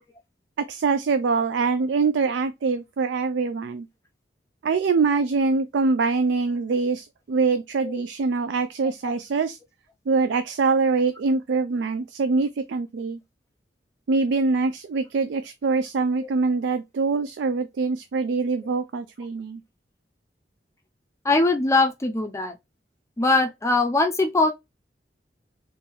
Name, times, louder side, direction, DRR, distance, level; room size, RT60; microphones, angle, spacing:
voice 1, 0.7-3.9 4.6-9.6 10.1-13.2 14.1-19.6, right 4 dB, 80° right, 0.4 m, -24 dB
voice 2, 21.2-22.5 23.2-24.5, left 2 dB, 15° left, 0.4 m, -21 dB
3.7 x 2.5 x 2.9 m
head